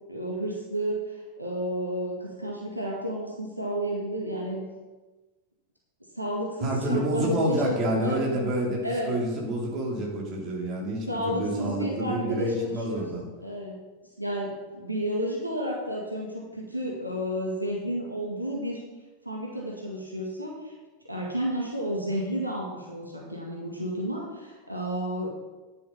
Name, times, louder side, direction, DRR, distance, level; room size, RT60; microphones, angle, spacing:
voice 1, 0.1-4.6 6.1-8.2 8.8-9.1 11.1-13.1 13.4-13.8 14.2-18.8 19.3-20.7 21.0-25.3, equal, 85° right, -2 dB, 1.9 m, -31 dB
voice 2, 6.6-13.3, right 1 dB, 35° right, -2 dB, 3.3 m, -28 dB
10.5 x 7.2 x 5.7 m, 1.2 s
figure-of-eight pair, 90°, 0 cm